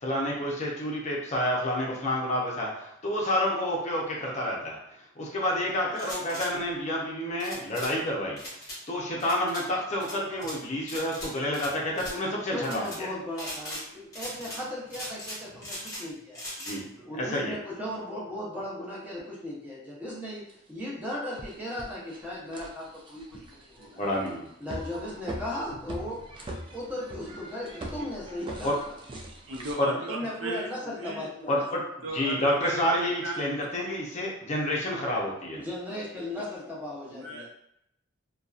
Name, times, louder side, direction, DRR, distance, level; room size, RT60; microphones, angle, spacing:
voice 1, 0.0-4.8 5.2-8.4 8.9-13.1 16.6-16.8 17.3-17.6 24.0-24.5 28.6-28.7 29.8-29.9 31.5-31.8 32.1-35.6, left 1 dB, 35° left, -3 dB, 0.6 m, -29 dB
sound 1, 5.9-6.5 7.4-7.9 8.4-8.8 9.2-9.6 10.0-10.6 10.9-11.7 11.9-12.2 12.6-13.0 13.3-13.8 14.1-14.6 14.9-16.0 16.3-16.8, left 1 dB, 20° left, 1.1 m, -39 dB
voice 2, 12.5-16.4 17.0-24.0 24.6-26.2 26.7-28.8 30.1-31.6 35.5-37.5, left 1 dB, 10° right, -7 dB, 0.8 m, -37 dB
voice 3, 16.9-17.3 23.8-24.0 29.2-31.3 32.0-33.7 36.1-36.5 37.0-37.5, right 1 dB, 70° right, -1 dB, 0.6 m, -38 dB
sound 2, 20.5-20.6 21.1-29.7, right 1 dB, 25° right, 0.3 m, -42 dB
2.6 x 2.2 x 2.4 m, 0.79 s
head